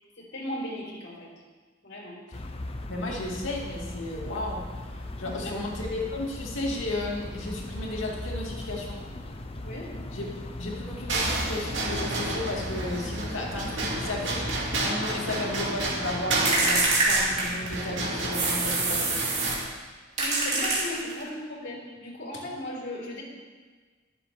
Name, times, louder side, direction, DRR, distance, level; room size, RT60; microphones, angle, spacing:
voice 1, 0.2-1.3 1.8-2.2 5.2-5.7 9.6-9.9 20.2-23.2, left 1 dB, 65° left, -3 dB, 4.1 m, -37 dB
sound 1, 2.3-14.9, left 1 dB, 30° left, 0.7 m, -38 dB
voice 2, 2.9-9.0 10.1-10.2 10.6-19.6, left 1 dB, 90° left, -2 dB, 2.5 m, -34 dB
sound 2, 11.1-19.6, right 2 dB, 70° right, 2.4 m, -31 dB
sound 3, 16.5-17.9 18.3-19.7 20.2-21.3, right 2 dB, 35° right, 2.7 m, -25 dB
21.5 x 7.7 x 3.4 m, 1.4 s
head